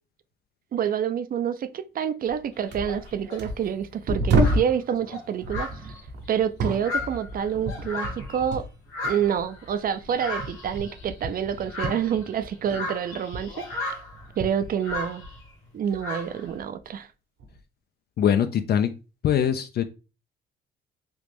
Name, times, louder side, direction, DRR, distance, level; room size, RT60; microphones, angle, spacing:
voice 1, 0.7-5.9 6.3-8.7 9.0-14.0 14.4-15.2 15.7-17.1, right 8 dB, 45° right, 0.4 m, -28 dB
sound 1, 2.3-2.4 2.7-4.8 5.4-8.8 9.0-12.9 13.1-15.5 15.9-16.6 17.4-17.6, right 2 dB, 65° right, 0.8 m, -30 dB
sound 2, 2.5-3.4 4.1-4.2 4.4-8.5 8.9-15.5 16.0-16.5, left 2 dB, 85° left, 1.3 m, -36 dB
voice 2, 18.2-19.0 19.2-19.8, left 9 dB, 55° left, 0.4 m, -22 dB
3.0 x 2.5 x 3.4 m
cardioid pair, 90°, 20 cm